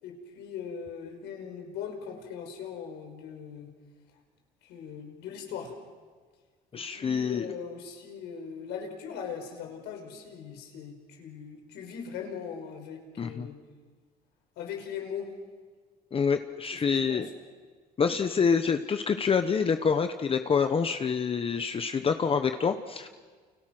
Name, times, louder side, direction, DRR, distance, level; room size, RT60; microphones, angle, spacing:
voice 1, 0.0-3.7 4.6-5.7 6.7-13.6 14.6-15.3 16.7-17.3, left 7 dB, 85° left, 3 dB, 5.7 m, -40 dB
voice 2, 6.7-7.4 13.2-13.5 16.1-17.3 18.0-23.1, left 6 dB, 35° left, 8 dB, 1.2 m, -26 dB
30.0 x 29.5 x 6.2 m, 1.5 s
cardioid pair, 110°, 17 cm